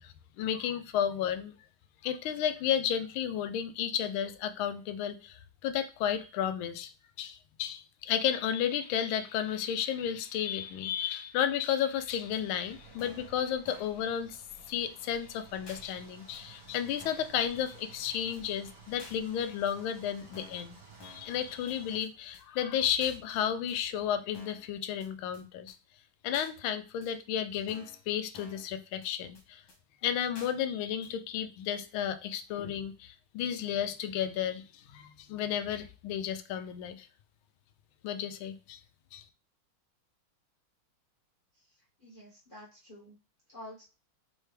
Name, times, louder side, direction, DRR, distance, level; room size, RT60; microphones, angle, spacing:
voice 1, 0.0-1.5 2.0-6.9 7.2-14.4 14.7-20.7 21.0-25.7 26.2-29.6 30.0-37.1 38.0-38.8 39.1-39.2, left 9 dB, 90° left, 1.4 m, -33 dB
sound 1, 12.1-22.0, right 3 dB, 45° right, 1.8 m, -54 dB
sound 2, 12.3-12.4 13.0-13.3 13.7-14.0 14.3-14.4 14.7-14.8 15.0-15.1 15.7-15.8 16.3-16.4 17.0-17.3 17.7-17.8 18.0-18.1 18.3-18.4 19.0-19.2 19.7-19.8 20.3-20.7 21.0-21.3 21.7-21.8 22.0-22.1 22.3-22.4 23.0-23.2 23.7-23.8 24.3-24.7 25.0-25.1 25.3-25.4 25.7-25.8 26.3-26.5 27.0-27.1 27.7-28.0 28.3-28.7 29.0-29.1 29.3-29.4 29.7-29.8 30.3-30.5 31.0-31.1, left 2 dB, 60° left, 1.9 m, -51 dB
voice 2, 42.0-43.2 43.5-43.8, left 1 dB, 35° left, 0.9 m, -49 dB
4.7 x 3.3 x 3.2 m
omnidirectional pair, 2.2 m